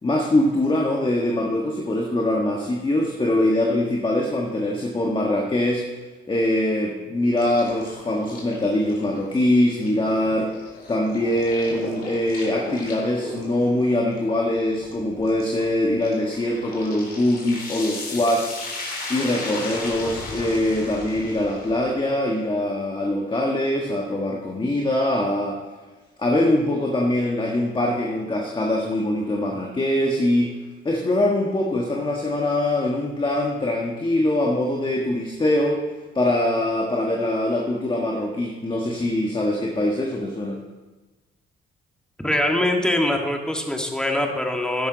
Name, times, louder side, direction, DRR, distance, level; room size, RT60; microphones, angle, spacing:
voice 1, 0.0-5.8 6.3-10.5 10.9-18.6 19.1-25.6 26.2-30.5 30.8-35.8 36.1-40.6, left 1 dB, 25° left, 0 dB, 1.6 m, -23 dB
sound 1, 7.4-21.8, left 2 dB, 50° left, 3.9 m, -36 dB
voice 2, 42.2-44.9, left 1 dB, 5° left, 2 dB, 1.9 m, -23 dB
12.5 x 10.5 x 4.1 m, 1.2 s
cardioid pair, 90°, 20 cm